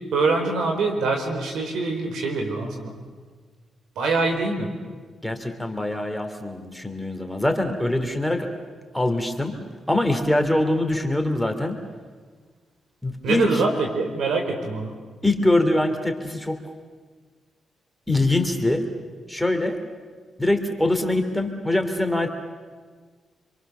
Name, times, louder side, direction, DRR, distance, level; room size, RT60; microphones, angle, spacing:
voice 1, 0.1-2.9 3.9-4.7 13.2-14.9, right 3 dB, 85° right, 3 dB, 4.7 m, -24 dB
voice 2, 5.2-8.5 8.9-9.6 9.9-11.8 13.0-13.5 15.2-16.6 18.1-18.8 19.3-19.8 20.4-22.3, left 1 dB, 5° left, 4 dB, 3.0 m, -23 dB
28.0 x 23.5 x 6.9 m, 1.5 s
cardioid pair, 85°, 0 cm